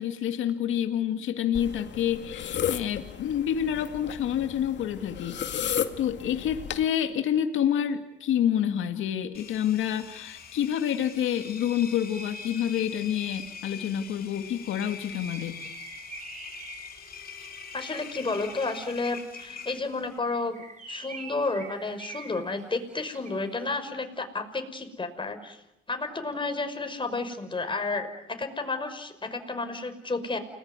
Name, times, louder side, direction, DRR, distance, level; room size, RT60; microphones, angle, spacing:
voice 1, 0.0-15.6, left 9 dB, 80° left, 6 dB, 2.0 m, -28 dB
sound 1, 1.5-6.8, left 9 dB, 65° left, 2.1 m, -34 dB
Engine, 9.3-20.2, left 6 dB, 50° left, 3.2 m, -43 dB
Bird, 14.3-18.4 20.0-23.6, right 3 dB, 40° right, 5.7 m, -46 dB
voice 2, 17.7-20.5 20.9-25.6 25.9-30.4, left 3 dB, 25° left, 7 dB, 5.6 m, -31 dB
29.5 x 20.5 x 9.6 m, 0.89 s
cardioid pair, 90°, 20 cm